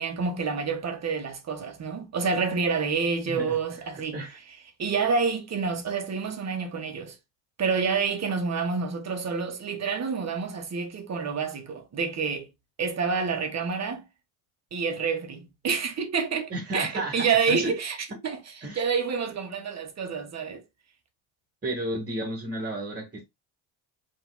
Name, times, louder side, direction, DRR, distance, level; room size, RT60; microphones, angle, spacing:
voice 1, 0.0-4.2 4.8-7.2 7.6-12.5 12.8-14.0 14.7-18.0 18.2-20.6, right 5 dB, 40° right, 1.5 m, -28 dB
voice 2, 3.2-3.6 4.1-4.4 16.5-17.7 18.6-18.8 21.6-23.3, right 1 dB, 25° right, 1.8 m, -32 dB
6.0 x 3.6 x 2.2 m
cardioid pair, 100°, 43 cm